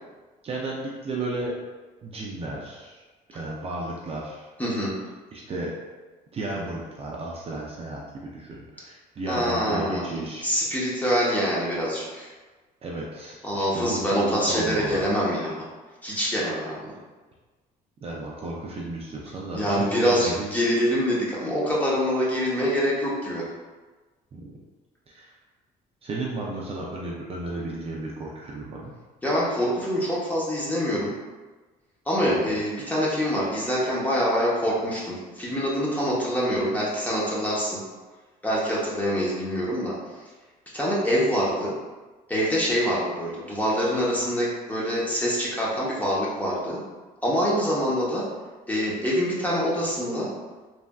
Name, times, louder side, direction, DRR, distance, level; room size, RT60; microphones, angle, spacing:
voice 1, 0.4-1.6 2.0-4.5 5.3-5.7 6.3-10.5 12.8-15.1 18.0-20.6 24.3-24.5 25.1-25.3 26.0-28.9 32.4-32.6, right 2 dB, 35° right, -3 dB, 0.4 m, -34 dB
voice 2, 4.6-4.9 9.3-10.1 10.4-12.3 13.4-15.6 16.0-16.9 19.5-23.4 29.2-31.1 32.1-37.8 38.4-39.9 40.7-41.7 42.3-46.8 47.2-48.3 48.7-50.3, equal, 10° left, -6 dB, 0.8 m, -25 dB
3.2 x 2.5 x 2.3 m, 1.3 s
cardioid pair, 110°, 17 cm